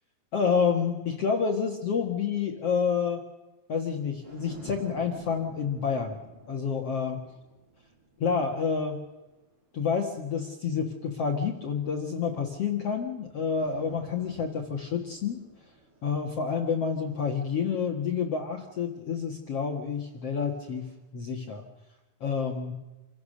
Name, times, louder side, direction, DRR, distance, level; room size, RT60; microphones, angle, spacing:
voice 1, 0.3-3.2 3.7-6.2 6.5-7.2 8.2-9.0 9.7-15.4 16.0-20.8 21.1-21.6 22.2-22.7, left 6 dB, 50° left, 2 dB, 2.0 m, -29 dB
sound 1, 4.0-10.5 11.3-13.2 13.5-18.8 19.8-21.0, right 3 dB, 80° right, 7.4 m, -54 dB
27.5 x 16.5 x 6.6 m, 1.1 s
omnidirectional pair, 4.5 m